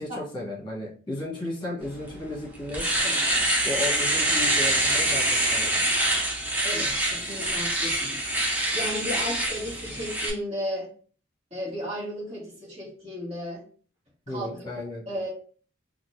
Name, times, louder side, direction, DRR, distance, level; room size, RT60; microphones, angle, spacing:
voice 1, 0.0-2.9 3.6-5.8 14.3-15.0, left 2 dB, 25° left, -4 dB, 1.3 m, -34 dB
Domestic sounds home sounds, 2.1-2.2 2.6-10.3, right 1 dB, 10° right, 0.6 m, -25 dB
voice 2, 6.5-8.2 8.5-10.9 11.5-13.6 14.3-14.6 15.1-15.3, equal, 30° right, -6 dB, 1.6 m, -34 dB
3.9 x 2.5 x 2.6 m, 0.43 s
head